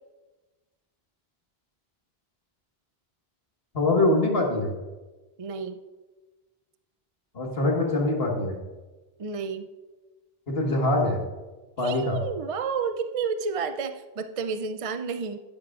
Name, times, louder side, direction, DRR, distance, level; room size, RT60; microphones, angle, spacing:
voice 1, 3.7-4.7 7.3-8.6 10.5-11.2 11.8-12.2, left 2 dB, 70° left, 1 dB, 1.8 m, -23 dB
voice 2, 5.4-5.8 9.2-9.7 11.8-15.4, right 5 dB, 45° right, 8 dB, 0.5 m, -30 dB
11.5 x 10.5 x 2.4 m, 1.2 s
omnidirectional pair, 1.0 m